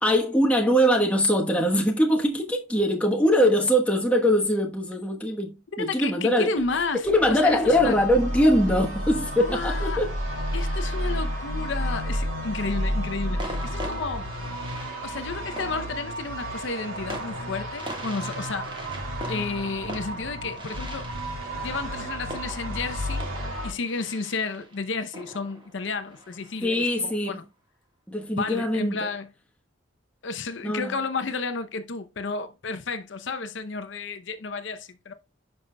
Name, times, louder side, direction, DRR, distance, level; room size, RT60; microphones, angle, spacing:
voice 1, 0.0-6.5 7.0-10.1 26.6-27.4 28.1-29.1 30.6-30.9, equal, 5° left, 1.1 m, -22 dB
voice 2, 5.7-8.0 9.4-10.0 10.5-14.3 15.0-18.7 19.3-21.1 21.6-23.2 23.6-27.5 28.3-29.3 30.2-35.1, left 4 dB, 65° left, 0.6 m, -32 dB
sound 1, 6.5-23.7, equal, 90° right, 2.9 m, -32 dB
sound 2, 12.1-12.5 13.4-26.8, right 1 dB, 25° right, 1.5 m, -42 dB
10.5 x 5.4 x 2.2 m
head